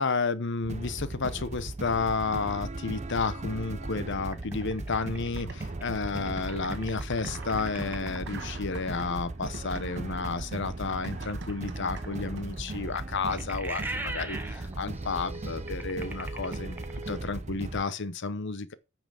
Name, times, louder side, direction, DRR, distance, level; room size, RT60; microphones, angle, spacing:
voice 1, 0.0-16.8 17.1-18.7, left 4 dB, 60° left, 0.9 m, -31 dB
sound 1, 0.6-17.8, right 2 dB, 35° right, 0.7 m, -37 dB
sound 2, 4.3-8.4 11.3-17.3, right 2 dB, 10° right, 1.3 m, -41 dB
sound 3, 5.4-6.0 6.3-12.7, right 3 dB, 60° right, 1.5 m, -46 dB
9.0 x 6.0 x 6.9 m
head